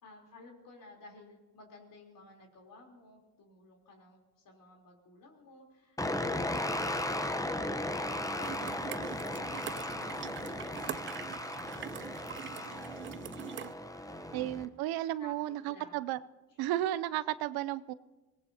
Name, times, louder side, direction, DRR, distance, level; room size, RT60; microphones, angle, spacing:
voice 1, 0.0-6.2 6.6-13.3 15.2-15.3 15.7-16.0 16.5-16.6, left 2 dB, 60° left, 1 dB, 3.6 m, -56 dB
sound 1, 6.0-14.7, left 1 dB, 10° left, 0.9 m, -36 dB
sound 2, 8.4-13.7, right 10 dB, 35° right, 0.4 m, -43 dB
voice 2, 14.3-16.2 16.6-17.9, right 14 dB, 80° right, 16 dB, 0.6 m, -33 dB
24.0 x 18.0 x 2.8 m, 1.2 s
supercardioid pair, 75°, 37 cm